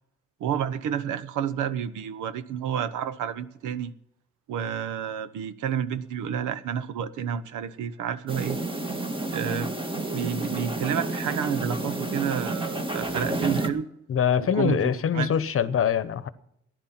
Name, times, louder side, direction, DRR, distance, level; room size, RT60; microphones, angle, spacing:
voice 1, 0.4-3.9 4.5-8.6 9.3-9.7 10.1-13.9 14.4-15.3, right 8 dB, 85° right, 14 dB, 1.0 m, -30 dB
Small Dog Panting, 8.3-13.7, right 2 dB, 15° right, 1.7 m, -30 dB
voice 2, 14.1-16.3, left 8 dB, 45° left, 15 dB, 1.0 m, -24 dB
14.5 x 11.0 x 5.9 m, 0.77 s
cardioid pair, 90°, 30 cm